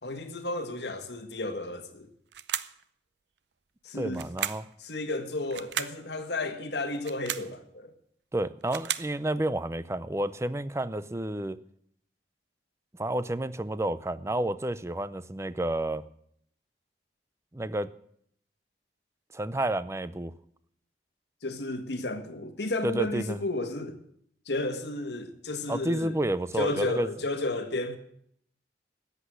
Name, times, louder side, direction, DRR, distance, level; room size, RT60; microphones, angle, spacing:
voice 1, 0.0-2.1 3.8-4.2 4.8-7.9 21.4-24.0 24.4-26.2 26.6-28.0, left 2 dB, 65° left, 1.7 m, -32 dB
sound 1, 2.3-2.8 4.1-4.7 5.5-6.0 7.0-7.5 8.4-9.1, right 10 dB, 70° right, 0.6 m, -34 dB
voice 2, 3.9-4.7 8.3-11.6 13.0-16.0 17.5-17.9 19.3-20.3 22.8-23.4 25.7-27.1, right 1 dB, 15° right, 0.5 m, -30 dB
14.0 x 8.3 x 9.5 m
head